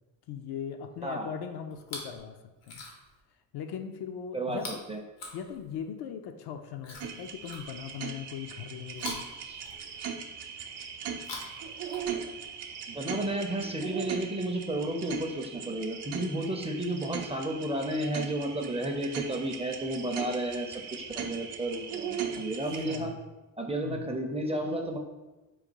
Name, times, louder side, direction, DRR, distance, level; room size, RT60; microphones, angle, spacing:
voice 1, 0.3-2.4 2.7-2.8 3.5-4.8 5.3-9.2 22.4-23.2 23.8-24.2, left 8 dB, 65° left, 6 dB, 0.5 m, -39 dB
Chewing mastication, 1.7-2.2 2.6-3.2 4.5-5.9 6.8-8.1 8.9-10.2 11.1-12.5 13.4-13.5, left 2 dB, 85° left, 1.0 m, -44 dB
sound 1, 7.0-23.0, right 7 dB, 70° right, 0.6 m, -39 dB
voice 2, 12.9-23.1 23.6-25.0, right 1 dB, 15° right, 3 dB, 0.5 m, -32 dB
4.0 x 2.3 x 4.5 m, 1.1 s
cardioid pair, 70°, 43 cm